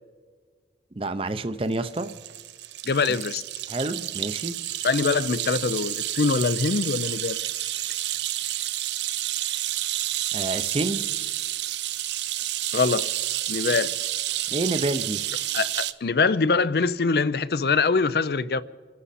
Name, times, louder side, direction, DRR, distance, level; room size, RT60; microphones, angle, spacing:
voice 1, 1.0-2.1 3.7-4.6 10.3-11.0 14.5-15.2, right 2 dB, 30° right, 0.6 m, -28 dB
sound 1, 1.7-15.9, right 14 dB, 75° right, 0.5 m, -30 dB
voice 2, 2.9-3.4 4.8-7.4 12.7-13.1 13.5-14.0 15.5-18.6, left 4 dB, 60° left, 0.5 m, -23 dB
28.5 x 11.5 x 4.2 m
head